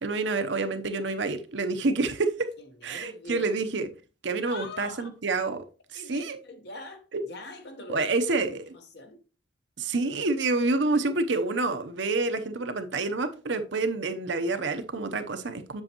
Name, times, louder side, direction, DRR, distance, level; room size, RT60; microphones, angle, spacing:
voice 1, 0.0-2.5 2.8-3.9 4.2-5.6 5.9-6.4 7.1-7.2 7.9-8.6 9.8-15.8, right 3 dB, 70° right, 0.8 m, -28 dB
voice 2, 2.6-3.6 4.4-5.1 5.9-8.4 8.7-9.2 9.8-9.9, left 2 dB, 60° left, 1.2 m, -43 dB
7.6 x 6.9 x 3.0 m
head